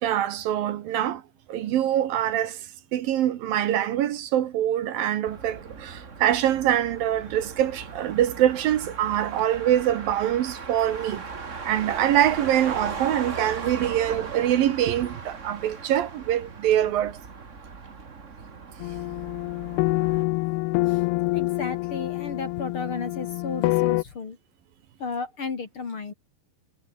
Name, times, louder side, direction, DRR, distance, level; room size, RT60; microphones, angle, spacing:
voice 1, 0.0-1.2 1.5-11.3 11.6-17.2, right 11 dB, 70° right, 2.9 m, -24 dB
Motor vehicle (road), 5.3-20.2, right 5 dB, 40° right, 1.0 m, -38 dB
sound 1, 18.8-24.0, left 23 dB, 85° left, 2.5 m, -26 dB
voice 2, 21.3-24.4 25.0-26.1, left 4 dB, 40° left, 2.8 m, -33 dB
omnidirectional pair, 4.5 m